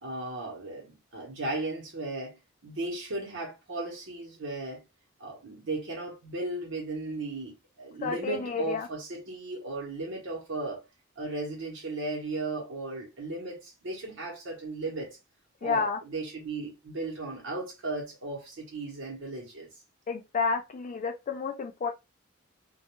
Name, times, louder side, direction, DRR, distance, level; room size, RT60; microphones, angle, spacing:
voice 1, 0.0-4.8 5.2-10.8 11.2-15.2 15.6-19.7, right 2 dB, 65° right, 0.8 m, -36 dB
voice 2, 8.0-8.9 15.6-16.0 20.1-21.9, left 5 dB, 40° left, 0.3 m, -30 dB
2.2 x 2.1 x 2.9 m
head